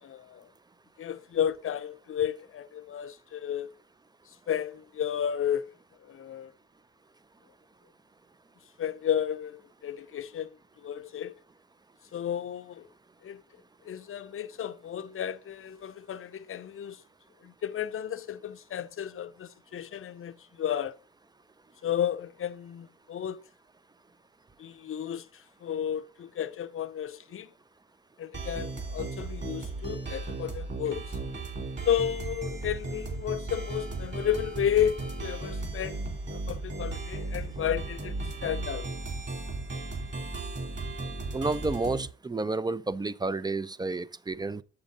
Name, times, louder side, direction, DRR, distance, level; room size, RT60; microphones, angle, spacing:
voice 1, 0.0-0.5 1.0-3.7 4.5-5.7 6.0-6.5 8.8-10.5 10.8-11.3 12.1-12.9 13.2-13.4 13.8-17.0 17.4-20.9 21.8-23.4 24.6-27.5 28.2-31.2 31.9-36.0 36.3-38.1 38.4-38.9, left 9 dB, 45° left, 0.6 m, -32 dB
sound 1, 28.3-42.1, right 2 dB, 35° right, 3.0 m, -36 dB
voice 2, 41.3-44.6, right 3 dB, 15° right, 0.4 m, -30 dB
7.1 x 6.7 x 3.8 m
cardioid pair, 90°, 30 cm